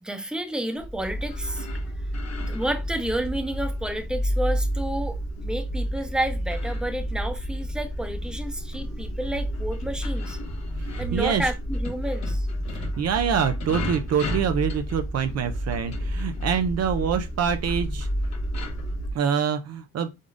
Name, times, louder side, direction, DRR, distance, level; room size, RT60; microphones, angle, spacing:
voice 1, 0.0-1.7 2.4-10.4 11.0-12.5, right 1 dB, 5° right, 0.9 m, -30 dB
sound 1, 0.8-19.1, equal, 65° left, 1.4 m, -30 dB
voice 2, 10.9-11.4 12.7-18.1 19.1-20.1, right 7 dB, 55° right, 0.6 m, -25 dB
5.2 x 3.8 x 2.5 m
cardioid pair, 90°, 30 cm